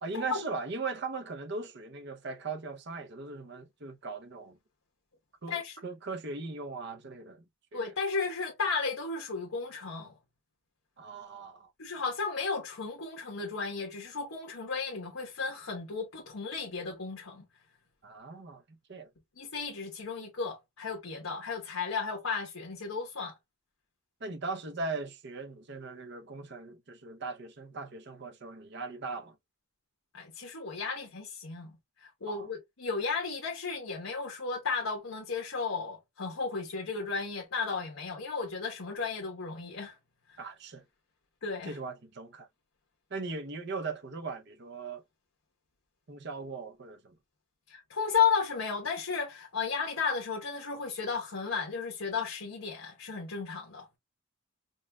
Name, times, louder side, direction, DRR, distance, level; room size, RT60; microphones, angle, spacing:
voice 1, 0.0-4.6 5.4-7.4 7.7-7.9 11.0-11.7 18.0-19.1 24.2-29.4 32.3-32.5 40.4-40.8 41.7-42.5 43.1-45.0 46.1-47.2, right 3 dB, 55° right, 0.7 m, -39 dB
voice 2, 7.7-10.1 11.8-17.4 19.4-23.3 30.1-40.0 40.3-40.4 41.4-41.7 47.7-53.9, left 5 dB, 75° left, 1.1 m, -34 dB
5.2 x 2.4 x 2.2 m
head